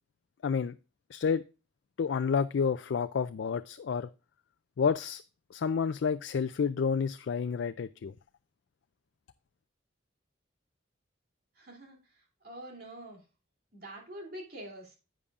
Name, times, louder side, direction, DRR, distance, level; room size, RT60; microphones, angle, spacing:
voice 1, 0.4-0.7 1.1-1.4 2.0-4.1 4.8-5.2 5.5-8.1, left 6 dB, 70° left, 0.4 m, -29 dB
voice 2, 11.6-12.0 12.4-13.2 13.7-15.0, right 1 dB, 55° right, 2.8 m, -45 dB
10.5 x 8.4 x 2.4 m
head